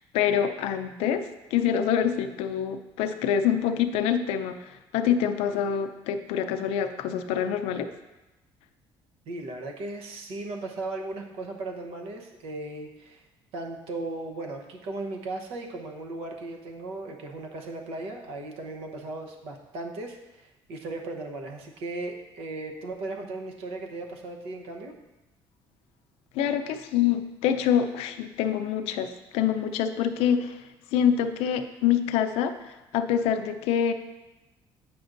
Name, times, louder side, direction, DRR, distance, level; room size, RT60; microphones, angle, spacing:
voice 1, 0.1-4.6 4.9-7.9 26.3-29.1 29.3-30.6 30.9-33.9, left 8 dB, 85° left, 8 dB, 0.5 m, -26 dB
voice 2, 9.3-13.2 13.5-24.9, right 2 dB, 75° right, 2 dB, 1.0 m, -37 dB
8.4 x 6.0 x 2.6 m, 1.0 s
cardioid pair, 115°, 10 cm